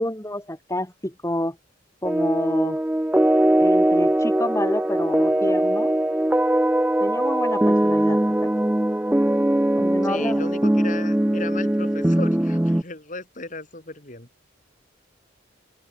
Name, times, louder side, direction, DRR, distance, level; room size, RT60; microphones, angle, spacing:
voice 1, 0.0-1.6 2.0-2.8 3.6-5.9 7.0-8.5 9.7-10.4, left 1 dB, 15° left, 4.7 m, -28 dB
sound 1, 2.0-12.8, right 1 dB, 5° right, 0.4 m, -21 dB
voice 2, 10.0-14.3, left 3 dB, 40° left, 4.4 m, -36 dB
open air
head